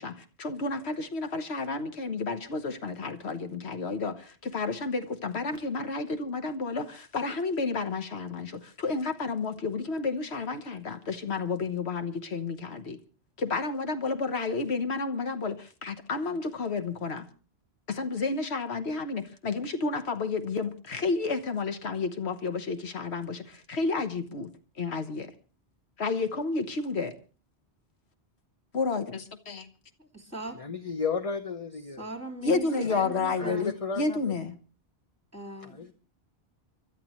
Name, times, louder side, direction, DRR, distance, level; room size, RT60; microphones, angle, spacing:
voice 1, 0.0-13.0 13.4-17.3 17.9-24.5 24.8-25.3 26.0-27.2 28.7-29.7 32.4-34.6, left 4 dB, 75° left, 1.4 m, -31 dB
voice 2, 30.0-30.6 32.0-33.8 35.3-35.8, right 2 dB, 15° right, 3.8 m, -40 dB
voice 3, 30.6-32.1 32.8-32.9 33.4-34.3 35.6-35.9, left 5 dB, 35° left, 0.9 m, -33 dB
29.0 x 12.5 x 3.1 m
omnidirectional pair, 1.1 m